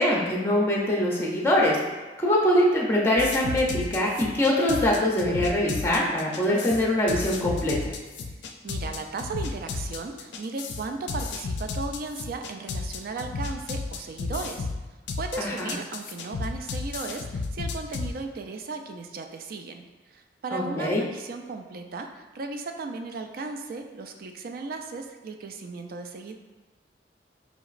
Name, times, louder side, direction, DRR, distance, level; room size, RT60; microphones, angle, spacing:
voice 1, 0.0-1.8 2.2-7.9 15.4-15.7 20.5-21.0, left 1 dB, 15° left, -3 dB, 0.5 m, -23 dB
sound 1, 3.2-18.1, left 4 dB, 80° left, 0.4 m, -33 dB
voice 2, 8.6-14.7 15.2-26.3, right 3 dB, 55° right, 5 dB, 0.3 m, -36 dB
5.1 x 2.9 x 2.4 m, 1.2 s
head